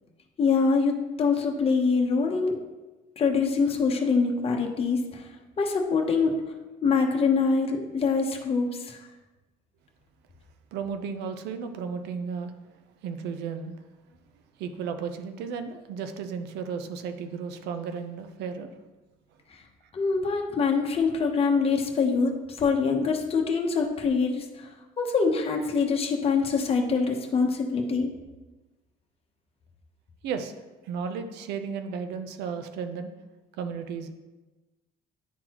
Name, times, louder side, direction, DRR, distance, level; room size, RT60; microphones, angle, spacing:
voice 1, 0.4-2.6 3.2-5.3 5.6-6.3 6.8-9.0 19.9-24.4 25.0-28.1, left 4 dB, 35° left, 2 dB, 1.0 m, -24 dB
voice 2, 10.7-12.5 13.0-13.7 14.6-18.7 30.2-30.5 30.8-33.1 33.6-34.1, right 6 dB, 85° right, 8 dB, 0.7 m, -34 dB
10.0 x 3.9 x 3.0 m, 1.1 s
cardioid pair, 110°, 17 cm